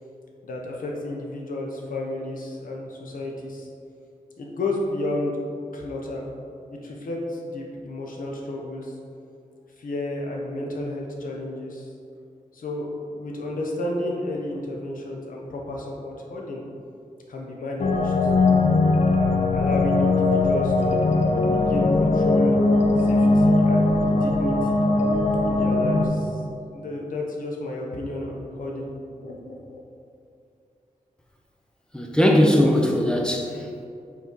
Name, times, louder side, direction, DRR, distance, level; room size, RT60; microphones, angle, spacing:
voice 1, 0.4-3.7 4.4-5.4 5.7-6.3 6.7-8.9 9.8-11.9 12.5-16.6 17.3-18.1 19.2-22.6 23.0-24.8 25.4-26.4 26.7-29.8, left 1 dB, 75° left, -1 dB, 1.0 m, -32 dB
sound 1, 17.8-26.1, left 2 dB, 55° left, 0.6 m, -20 dB
voice 2, 31.9-33.8, equal, 5° left, 0 dB, 0.7 m, -20 dB
5.7 x 4.3 x 4.6 m, 2.5 s
wide cardioid pair, 155°, 14 cm